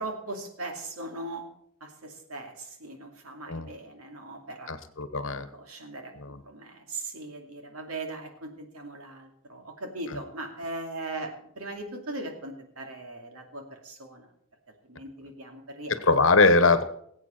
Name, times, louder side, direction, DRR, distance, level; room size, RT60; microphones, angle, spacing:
voice 1, 0.0-1.5 1.8-4.7 5.5-14.3 14.8-15.9, right 2 dB, 90° right, 3 dB, 2.4 m, -39 dB
voice 2, 4.7-5.5 16.1-16.8, left 3 dB, 65° left, 12 dB, 1.1 m, -21 dB
20.0 x 8.2 x 4.4 m, 0.72 s
head